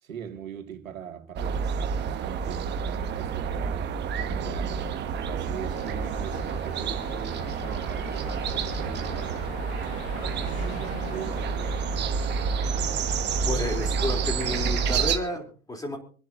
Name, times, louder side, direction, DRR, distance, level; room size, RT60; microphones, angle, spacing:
voice 1, 0.0-4.0 4.2-5.0 5.2-9.5 10.0-12.0, right 8 dB, 75° right, 2.4 m, -41 dB
sound 1, 1.4-15.2, right 6 dB, 25° right, 1.6 m, -29 dB
sound 2, 5.7-14.9, left 9 dB, 45° left, 1.4 m, -43 dB
voice 2, 13.5-16.0, left 1 dB, 10° left, 3.5 m, -31 dB
27.0 x 10.5 x 2.8 m
hypercardioid pair, 110°, 41 cm